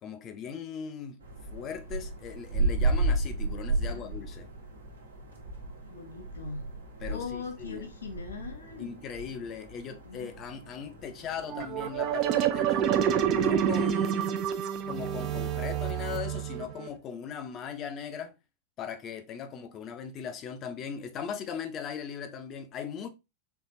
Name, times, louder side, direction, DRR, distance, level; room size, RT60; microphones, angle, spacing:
voice 1, 0.0-1.2 1.5-4.5 7.0-7.9 8.8-12.9 13.3-14.4 14.9-18.3 18.8-23.1, left 7 dB, 30° left, 0.7 m, -39 dB
sound 1, 1.2-13.6, right 2 dB, 75° right, 1.1 m, -34 dB
voice 2, 5.8-6.7 7.1-8.9 10.0-10.3, left 5 dB, 70° left, 0.7 m, -40 dB
sound 2, 11.5-16.9, right 9 dB, 35° right, 0.5 m, -28 dB
4.7 x 3.2 x 2.6 m
figure-of-eight pair, 90°, 0 cm